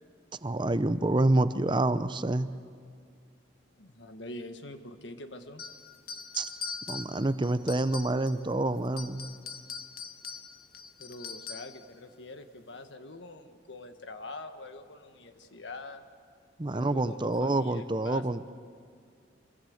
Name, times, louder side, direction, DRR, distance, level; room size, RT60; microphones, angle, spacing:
voice 1, 0.4-2.5 6.4-6.5 6.9-9.3 16.6-18.5, right 2 dB, 25° right, 12 dB, 0.7 m, -27 dB
voice 2, 3.8-5.6 11.0-16.0 16.7-18.2, left 2 dB, 70° left, 7 dB, 1.5 m, -44 dB
sound 1, 5.6-8.5 8.8-11.8, left 5 dB, 55° left, 1.0 m, -42 dB
25.5 x 21.5 x 7.9 m, 2.2 s
head